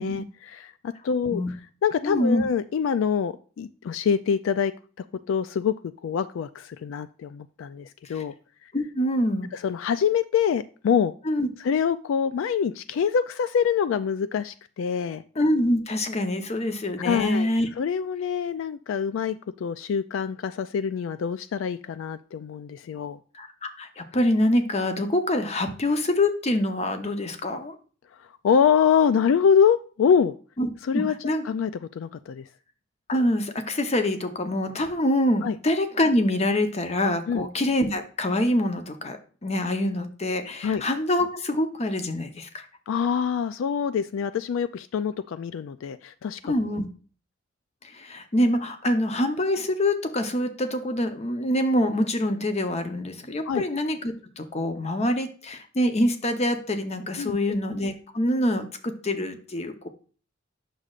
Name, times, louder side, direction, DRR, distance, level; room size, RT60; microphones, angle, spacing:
voice 1, 0.0-1.6 1.8-5.7 6.0-8.3 9.5-11.1 11.6-15.2 17.0-17.5 17.8-23.2 28.4-30.3 30.8-32.5 35.4-35.6 37.3-37.4 40.6-40.8 42.9-46.5 53.5-53.6 57.2-57.4, left 7 dB, 80° left, 13 dB, 0.3 m, -25 dB
voice 2, 2.0-2.4 8.1-8.2 8.7-9.5 11.3-11.5 15.4-17.7 23.3-27.8 30.6-31.4 33.1-42.6 46.4-46.9 47.8-59.9, left 1 dB, 35° left, 7 dB, 0.8 m, -25 dB
8.2 x 6.3 x 2.4 m, 0.39 s
head